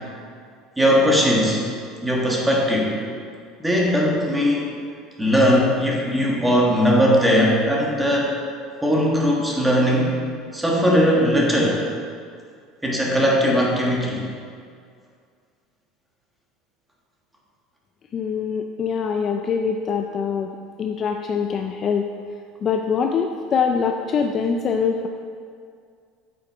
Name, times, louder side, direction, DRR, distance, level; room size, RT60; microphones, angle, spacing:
voice 1, 0.8-1.6 2.0-3.0 3.6-4.6 5.2-8.3 8.8-10.1 10.5-11.8 12.8-14.2, equal, 5° right, -3 dB, 1.3 m, -19 dB
voice 2, 18.1-20.5 20.8-22.0 22.6-25.1, left 6 dB, 25° left, 4 dB, 0.4 m, -23 dB
8.4 x 7.7 x 4.6 m, 2.2 s
cardioid pair, 170°, 0 cm